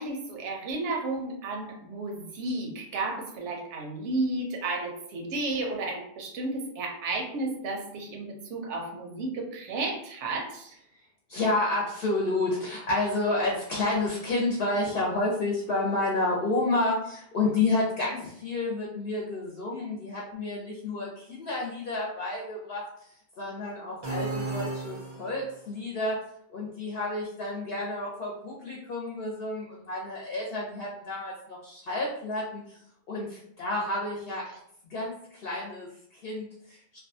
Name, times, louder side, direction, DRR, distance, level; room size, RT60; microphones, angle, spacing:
voice 1, 0.0-10.7, right 2 dB, 85° right, 1 dB, 0.9 m, -32 dB
voice 2, 11.3-23.1 23.4-26.2 26.5-32.8 33.1-34.5 34.9-37.0, left 2 dB, 65° left, -3 dB, 0.7 m, -30 dB
sound 1, 24.0-25.6, right 2 dB, 45° right, 0.3 m, -34 dB
2.5 x 2.2 x 2.6 m, 0.70 s
omnidirectional pair, 1.2 m